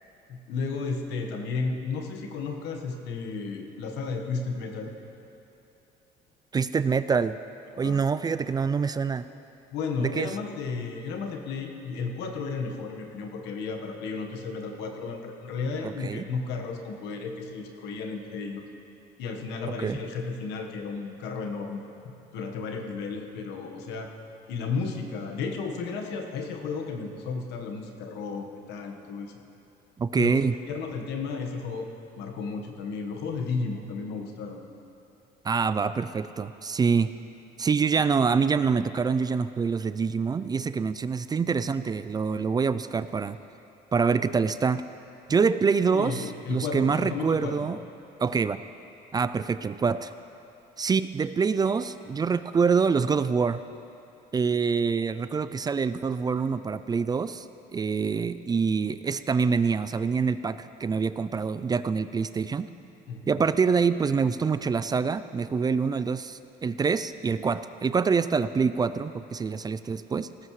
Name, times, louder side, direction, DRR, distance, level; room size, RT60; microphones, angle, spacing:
voice 1, 0.3-4.9 7.8-8.0 9.7-18.6 19.2-24.1 24.5-29.3 30.1-30.4 30.7-31.9 32.2-34.6 45.9-47.7 63.1-63.4, left 4 dB, 90° left, 3 dB, 1.4 m, -33 dB
voice 2, 6.5-7.4 7.8-9.2 10.0-10.3 15.8-16.2 19.8-20.0 30.0-30.5 35.4-37.1 37.6-43.4 43.9-44.8 45.3-47.8 48.2-48.6 49.1-50.1 50.8-53.6 54.3-57.4 57.7-62.7 63.3-70.3, right 5 dB, 25° right, 13 dB, 0.3 m, -25 dB
18.0 x 14.5 x 3.2 m, 2.9 s
cardioid pair, 110°, 17 cm